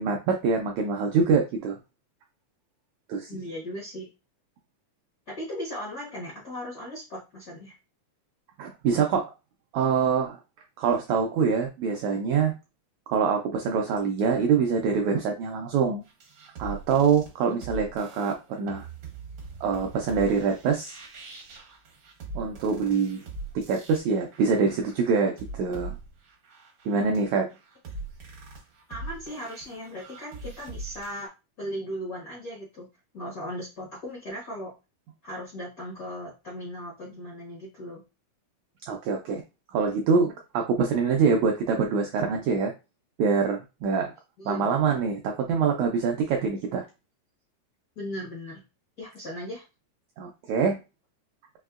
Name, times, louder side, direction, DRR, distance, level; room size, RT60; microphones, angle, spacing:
voice 1, 0.0-1.8 3.1-3.3 8.6-9.3 9.7-10.4 10.8-12.6 13.1-16.0 16.6-18.9 19.6-21.0 22.3-23.2 23.5-26.0 26.8-27.5 38.9-39.4 39.7-42.7 43.2-44.1 44.4-46.8 50.2-50.8, right 5 dB, 90° right, 2 dB, 1.6 m, -25 dB
voice 2, 3.3-4.1 5.3-7.7 28.9-31.3 31.6-32.9 33.1-34.7 35.2-38.0 44.4-44.8 47.9-48.6 49.0-49.6, equal, 80° left, -5 dB, 0.8 m, -37 dB
sound 1, 16.1-31.3, right 3 dB, 70° right, 1.1 m, -42 dB
5.3 x 2.7 x 2.4 m, 0.27 s
omnidirectional pair, 3.8 m